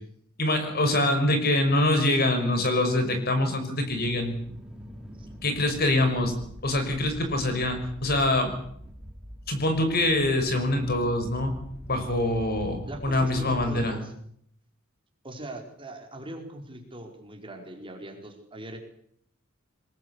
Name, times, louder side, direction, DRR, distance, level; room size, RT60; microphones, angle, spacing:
voice 1, 0.4-4.3 5.4-6.3 6.6-8.5 9.5-11.5 11.9-14.0, left 1 dB, 50° left, 7 dB, 5.8 m, -24 dB
sound 1, 3.8-13.8, equal, 5° right, 4.1 m, -44 dB
voice 2, 12.9-14.1 15.2-18.8, right 1 dB, 25° right, 3 dB, 4.8 m, -41 dB
22.5 x 21.0 x 8.4 m, 0.67 s
head